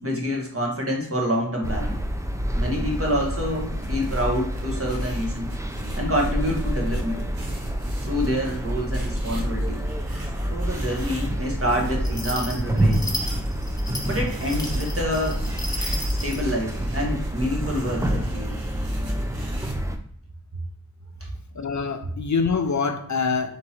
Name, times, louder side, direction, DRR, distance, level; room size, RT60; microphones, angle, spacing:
voice 1, 0.0-2.0 2.5-5.5 6.0-7.2 8.0-9.8 10.5-13.1 14.0-15.4 16.2-18.6 21.2-21.3, equal, 35° right, 1.4 m, -27 dB
sound 1, 1.6-20.0, equal, 10° right, 0.5 m, -27 dB
sound 2, 3.5-11.9 12.7-19.7, right 1 dB, 70° right, 1.1 m, -43 dB
sound 3, 12.0-16.4, left 1 dB, 10° left, 1.0 m, -34 dB
voice 2, 21.6-23.6, left 5 dB, 50° left, 0.5 m, -25 dB
3.7 x 2.9 x 4.3 m
wide cardioid pair, 40°, 37 cm